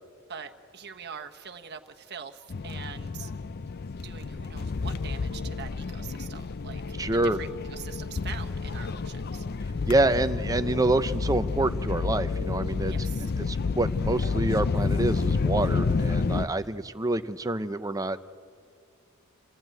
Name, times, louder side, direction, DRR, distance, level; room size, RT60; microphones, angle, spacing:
voice 1, 0.3-3.3 4.0-6.8 7.1-9.4 9.8-9.9 12.9-13.3 16.4-16.7, right 7 dB, 50° right, 6 dB, 1.2 m, -43 dB
sound 1, 2.5-16.5, left 4 dB, 50° left, 0.5 m, -30 dB
voice 2, 7.0-7.4 9.9-18.2, right 2 dB, 15° right, 11 dB, 0.6 m, -27 dB
27.5 x 15.0 x 9.0 m, 2.3 s
head